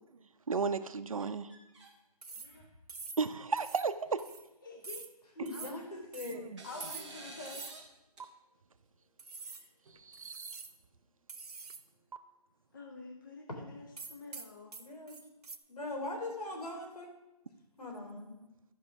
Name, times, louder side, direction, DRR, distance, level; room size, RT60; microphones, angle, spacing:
voice 1, 0.5-1.5 3.2-4.3 6.3-6.6 10.0-10.6, right 5 dB, 60° right, 11 dB, 0.7 m, -34 dB
sound 1, 1.2-1.9 2.3-2.8 3.6-3.7 4.0-4.1 5.5-6.0 6.6-7.9 8.2-8.3 9.4-10.2, right 2 dB, ahead, 0.6 m, -51 dB
sound 2, 2.2-2.6 2.9-3.3 3.6-3.9 4.2-4.5 4.8-5.1 5.5-5.8 6.1-6.4 6.8-7.2 7.5-7.8 8.2-8.3 9.2-9.7 10.1-10.8 11.3-11.9 12.1-12.2 14.0-15.6, right 4 dB, 80° right, 1.0 m, -46 dB
voice 2, 4.6-5.0 5.5-6.1 6.6-7.7 10.0-10.4 12.7-14.7, left 3 dB, 30° left, 2 dB, 0.9 m, -49 dB
voice 3, 5.4-6.5 14.8-15.2 15.7-17.1 17.8-18.3, left 2 dB, 75° left, 2 dB, 3.5 m, -40 dB
13.0 x 5.4 x 5.9 m, 0.95 s
hypercardioid pair, 170°, 20 cm